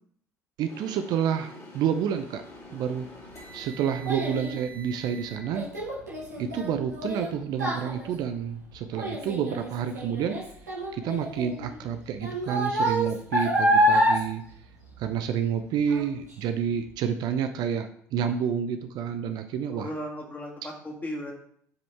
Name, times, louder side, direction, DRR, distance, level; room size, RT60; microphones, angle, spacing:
voice 1, 0.6-2.4 2.7-3.1 3.5-5.7 6.4-10.4 10.9-14.4 15.0-19.9, right 8 dB, 50° right, 8 dB, 0.6 m, -29 dB
sound 1, 0.7-5.4, right 1 dB, 35° left, 2.7 m, -46 dB
Child speech kid speaking, 2.9-15.5 15.9-16.3 16.8-16.9, equal, 85° right, 1.8 m, -28 dB
voice 2, 19.7-21.3, equal, 20° left, -1 dB, 2.3 m, -36 dB
8.7 x 5.1 x 3.5 m, 0.66 s
figure-of-eight pair, 60°, 9 cm